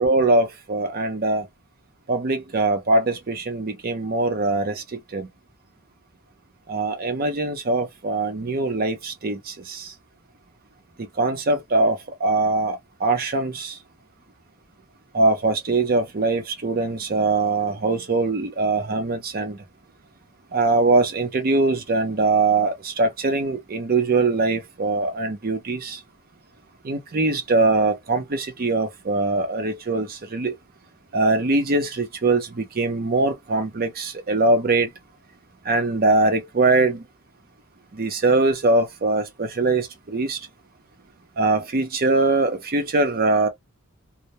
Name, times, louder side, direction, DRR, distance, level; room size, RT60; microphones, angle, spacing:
voice 1, 0.0-1.5 2.1-5.3 6.7-9.9 11.2-13.8 15.1-19.6 20.5-26.0 26.8-30.5 31.1-34.9 35.7-37.0 37.9-40.4 41.4-43.5, right 3 dB, 45° right, 0.6 m, -22 dB
2.1 x 2.1 x 2.7 m
head